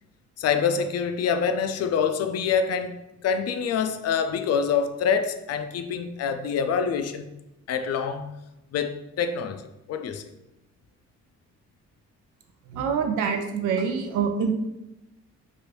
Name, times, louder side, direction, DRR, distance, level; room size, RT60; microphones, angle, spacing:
voice 1, 0.4-3.0 3.2-7.3 7.7-8.3 8.7-9.6 9.9-10.2, left 6 dB, 55° left, 0.4 m, -26 dB
voice 2, 12.7-14.5, right 6 dB, 80° right, 0.5 m, -25 dB
3.1 x 2.5 x 3.0 m
cardioid pair, 90°, 30 cm